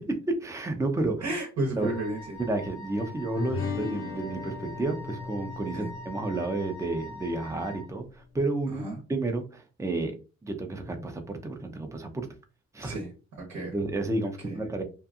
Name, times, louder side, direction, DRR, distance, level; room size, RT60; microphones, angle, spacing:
voice 1, 0.0-1.3 1.8-1.9 2.4-8.8 9.1-10.1 10.4-12.3 12.7-13.0 13.7-14.8, right 2 dB, 10° right, 5 dB, 0.6 m, -31 dB
voice 2, 1.2-2.4 5.7-5.9 8.7-9.0 12.8-13.8 14.4-14.6, right 2 dB, 65° right, 1 dB, 0.9 m, -33 dB
Wind instrument woodwind instrument, 1.8-7.9, equal, 70° left, 1.1 m, -44 dB
sound 1, 3.3-8.0, left 5 dB, 45° left, 0.5 m, -38 dB
2.7 x 2.5 x 2.4 m, 0.33 s
cardioid pair, 90°, 30 cm